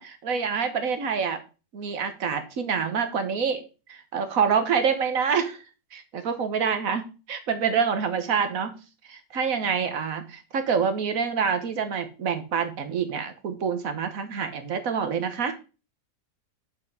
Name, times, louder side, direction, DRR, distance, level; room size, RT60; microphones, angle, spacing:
voice 1, 0.0-1.4 1.7-3.6 3.9-5.6 5.9-7.0 7.3-8.8 9.1-15.5, right 6 dB, 60° right, 8 dB, 1.4 m, -26 dB
6.9 x 5.5 x 4.7 m, 0.32 s
omnidirectional pair, 1.8 m